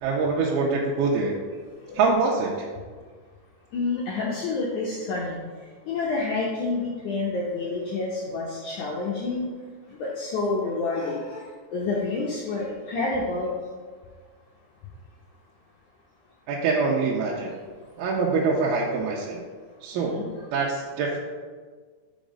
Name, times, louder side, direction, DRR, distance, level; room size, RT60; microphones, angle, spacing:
voice 1, 0.0-1.3 1.9-2.5 16.5-17.5 18.0-19.4 19.8-20.2 20.5-21.2, right 4 dB, 90° right, -3 dB, 2.6 m, -24 dB
voice 2, 3.7-5.4 5.9-9.5 10.0-11.4 11.7-13.5 20.0-20.3, left 3 dB, 80° left, -3 dB, 1.7 m, -28 dB
5.3 x 5.0 x 5.2 m, 1.5 s
omnidirectional pair, 4.4 m